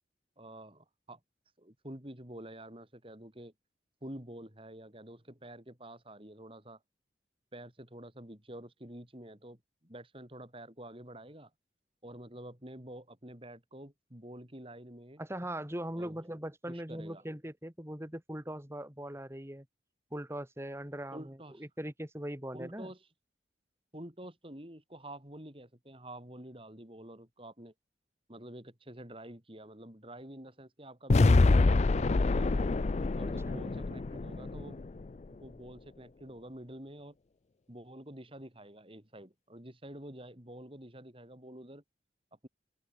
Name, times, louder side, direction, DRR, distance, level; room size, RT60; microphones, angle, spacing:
voice 1, 0.4-1.2 1.6-3.5 4.0-6.8 7.5-11.5 12.0-15.2 15.9-16.2 16.7-17.2 21.1-21.6 22.5-23.0 23.9-27.7 28.3-32.7 33.2-34.8 35.3-37.1 37.7-41.8, right 1 dB, 30° right, 5.0 m, -48 dB
voice 2, 15.2-19.7 20.1-22.9 33.3-33.7, right 1 dB, 15° right, 2.4 m, -40 dB
sound 1, 31.1-35.2, left 3 dB, 40° left, 0.4 m, -26 dB
open air
head